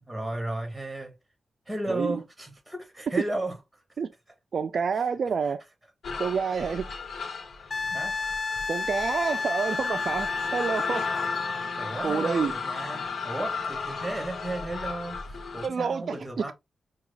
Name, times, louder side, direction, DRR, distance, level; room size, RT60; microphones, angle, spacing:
voice 1, 0.0-1.1 1.7-3.6 7.9-8.4 11.6-16.5, right 1 dB, 10° right, 1.9 m, -34 dB
voice 2, 1.9-2.2 4.0-4.1 4.5-5.6 6.2-6.9 8.7-11.1 12.0-12.5 15.6-16.5, right 6 dB, 65° right, 0.3 m, -28 dB
sound 1, 6.0-15.7, left 5 dB, 75° left, 0.8 m, -35 dB
Wind instrument woodwind instrument, 7.7-11.9 14.6-14.8, left 4 dB, 40° left, 0.3 m, -31 dB
5.7 x 2.3 x 3.3 m
cardioid pair, 85°, 0 cm